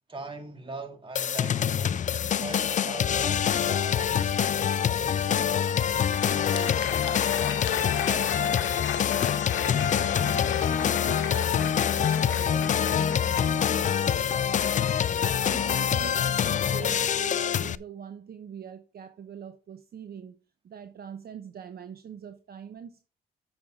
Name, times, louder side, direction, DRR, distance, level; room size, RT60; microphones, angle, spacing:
voice 1, 0.1-2.0 2.3-5.5 6.1-8.8, right 2 dB, 25° right, 2.0 m, -42 dB
sound 1, 1.1-17.7, left 8 dB, 40° left, 0.4 m, -25 dB
Crowd, 5.9-14.4, left 10 dB, 70° left, 1.1 m, -36 dB
voice 2, 9.6-14.6 15.1-20.4 20.6-23.1, right 8 dB, 50° right, 0.9 m, -43 dB
8.6 x 6.9 x 3.7 m
cardioid pair, 90°, 20 cm